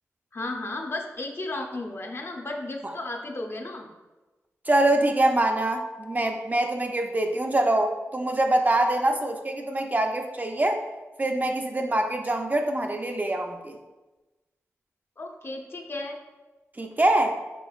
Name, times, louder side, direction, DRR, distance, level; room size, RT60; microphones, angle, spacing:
voice 1, 0.3-3.9 15.2-16.2, left 2 dB, 45° left, 2 dB, 0.6 m, -34 dB
voice 2, 4.7-10.8 11.2-13.8 16.8-17.4, right 1 dB, 30° right, 4 dB, 0.4 m, -24 dB
5.1 x 2.9 x 2.3 m, 1.1 s
cardioid pair, 45°, 6 cm